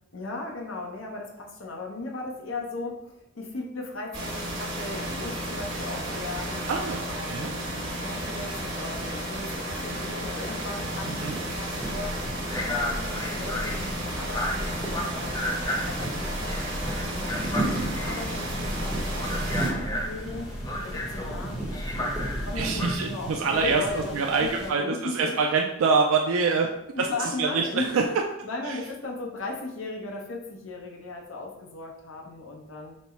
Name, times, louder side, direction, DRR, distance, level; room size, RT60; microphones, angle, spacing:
voice 1, 0.1-6.7 7.1-12.1 12.5-17.4 17.8-20.5 20.8-25.4 26.9-27.9 28.4-33.0, left 2 dB, 70° left, 0 dB, 0.8 m, -37 dB
sound 1, 4.1-19.7, right 1 dB, 70° right, 1.3 m, -33 dB
voice 2, 6.7-7.5 11.2-11.4 22.6-26.7 27.0-28.0 28.7-28.8, right 4 dB, 85° right, 2 dB, 0.4 m, -25 dB
sound 2, 10.7-24.7, right 2 dB, ahead, 0.8 m, -37 dB
sound 3, 11.8-23.0, left 1 dB, 15° left, 0.4 m, -33 dB
4.2 x 2.1 x 4.4 m, 0.83 s
head